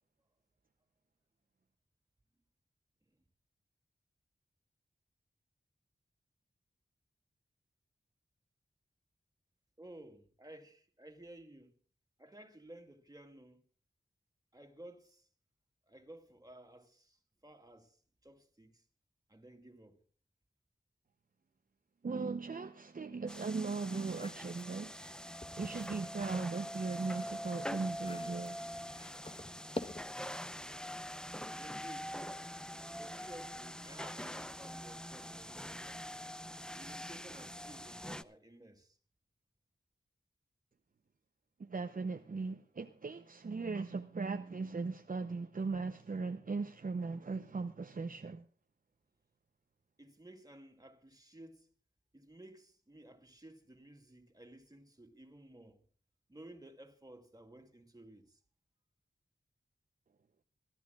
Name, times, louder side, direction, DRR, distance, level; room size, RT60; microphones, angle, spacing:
voice 1, 9.8-11.7 12.2-13.7 14.5-15.3 15.9-18.8 19.3-20.0 31.6-32.2 32.9-36.1 36.7-39.0 50.0-51.7 52.1-55.9 56.3-58.4, right 1 dB, 20° right, 2.5 m, -55 dB
voice 2, 22.0-25.0 25.6-28.8 41.6-48.4, right 4 dB, 50° right, 0.7 m, -38 dB
sound 1, 23.3-38.2, equal, 5° left, 0.6 m, -44 dB
sound 2, 23.9-26.1 26.5-30.3, left 2 dB, 30° left, 1.1 m, -48 dB
25.5 x 12.5 x 2.4 m
wide cardioid pair, 70°, 18 cm